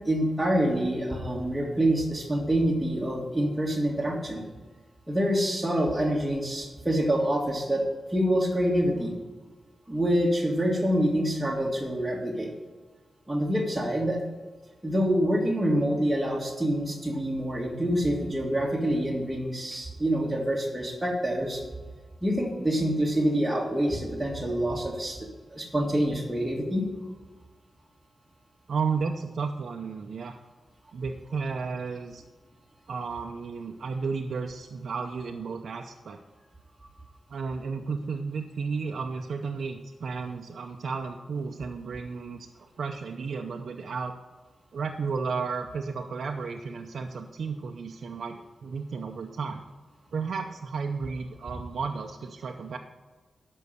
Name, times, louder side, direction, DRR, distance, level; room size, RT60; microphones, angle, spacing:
voice 1, 0.0-4.4 5.1-7.8 8.1-9.2 9.9-12.5 13.3-14.2 14.8-21.6 22.2-25.2 25.5-26.8, equal, 10° right, -4 dB, 2.0 m, -26 dB
voice 2, 28.7-30.4 30.9-32.2 32.9-36.2 37.3-44.1 44.7-49.6 50.1-52.8, right 5 dB, 75° right, 2 dB, 0.6 m, -33 dB
12.5 x 5.5 x 6.6 m, 1.3 s
cardioid pair, 80°, 0 cm